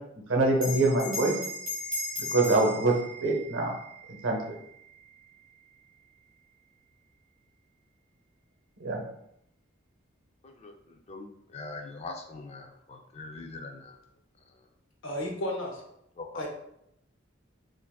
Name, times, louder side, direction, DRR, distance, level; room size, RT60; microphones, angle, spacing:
voice 1, 0.3-1.3 2.3-2.9 3.2-3.7 4.2-4.4 8.8-9.0, right 2 dB, 80° right, 1 dB, 0.7 m, -24 dB
Bell, 0.5-5.4, left 1 dB, 25° right, 1.2 m, -37 dB
voice 2, 11.1-13.9 16.2-16.3, left 3 dB, 35° left, 4 dB, 0.3 m, -42 dB
voice 3, 15.0-15.8 16.3-16.5, left 1 dB, 80° left, 1 dB, 0.7 m, -33 dB
3.4 x 2.5 x 2.3 m, 0.77 s
head